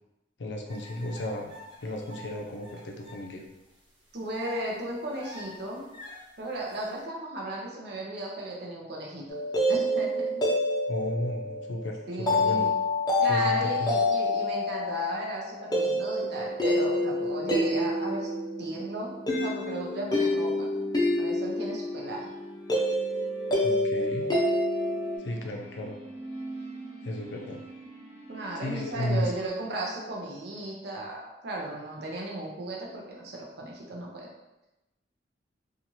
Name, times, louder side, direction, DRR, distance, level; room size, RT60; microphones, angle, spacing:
voice 1, 0.4-1.5 1.8-3.4 10.9-12.7 13.3-13.9 23.6-24.3 25.2-26.0 27.0-27.6 28.5-29.3, left 1 dB, 75° left, 2 dB, 0.5 m, -33 dB
sound 1, 0.7-3.2 3.7-3.8 4.3-7.0, left 1 dB, 30° right, 0.8 m, -47 dB
voice 2, 4.1-5.8 6.4-9.2 9.7-10.4 12.1-12.7 13.2-18.3 18.6-19.1 19.4-20.7 21.2-22.3 28.3-34.3, right 1 dB, 65° right, -2 dB, 0.6 m, -35 dB
sound 2, 9.3-25.2, left 1 dB, 25° left, 0.5 m, -27 dB
sound 3, 11.0-28.9, right 2 dB, 5° left, 1.0 m, -46 dB
2.7 x 2.4 x 3.0 m, 0.97 s
head